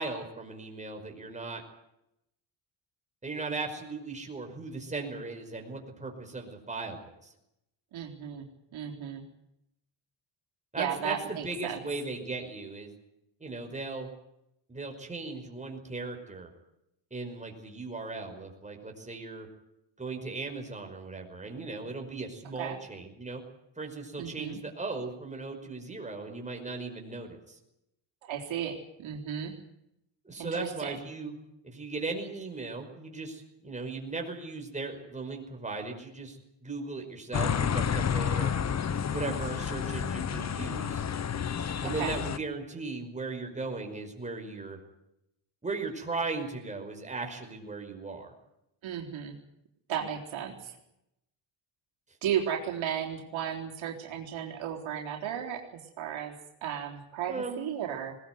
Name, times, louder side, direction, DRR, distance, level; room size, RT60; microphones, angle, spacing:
voice 1, 0.0-1.6 3.2-7.0 7.2-7.3 10.7-12.9 13.4-14.1 14.7-16.5 17.1-19.5 20.0-23.4 23.8-27.6 30.2-31.4 31.6-38.5 39.1-41.0 41.8-44.8 45.6-48.3 57.3-57.7, right 3 dB, 15° right, 3 dB, 5.3 m, -37 dB
voice 2, 7.9-8.5 8.7-9.2 10.8-11.8 22.6-22.8 24.2-24.6 28.2-29.5 30.4-31.0 41.8-42.2 48.8-49.4 49.9-50.8 52.2-55.6 56.0-56.4 56.6-58.2, right 9 dB, 70° right, 1 dB, 4.0 m, -34 dB
sound 1, 37.3-42.4, left 7 dB, 35° left, 1.0 m, -30 dB
21.0 x 19.0 x 9.5 m, 0.83 s
cardioid pair, 125°, 48 cm